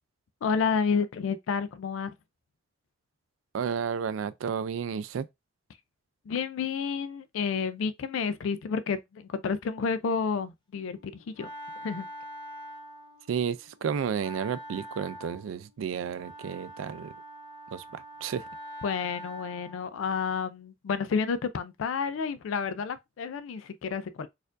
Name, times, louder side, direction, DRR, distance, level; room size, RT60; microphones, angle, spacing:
voice 1, 0.4-2.1 6.3-11.1 11.4-11.5 11.8-12.1 18.8-24.3, left 5 dB, 90° left, 0.4 m, -30 dB
voice 2, 3.5-5.3 13.3-17.1 17.7-18.5, right 7 dB, 90° right, 0.3 m, -32 dB
Wind instrument woodwind instrument, 10.8-19.9, right 1 dB, 25° left, 0.8 m, -45 dB
4.3 x 2.5 x 2.4 m
head